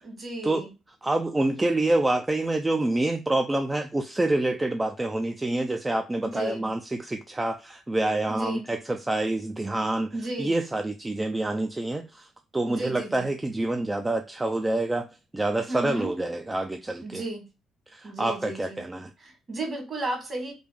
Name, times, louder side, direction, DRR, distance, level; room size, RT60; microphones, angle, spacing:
voice 1, 0.0-0.7 6.2-6.7 8.3-8.7 10.1-10.6 12.6-13.3 15.7-16.1 17.0-17.4 18.0-18.8 19.2-20.5, right 1 dB, 45° right, 1.7 m, -34 dB
voice 2, 1.0-12.3 12.5-15.1 15.3-17.2 17.9-19.1, right 2 dB, 15° right, 0.3 m, -27 dB
3.3 x 2.4 x 3.5 m
cardioid pair, 90°, 0 cm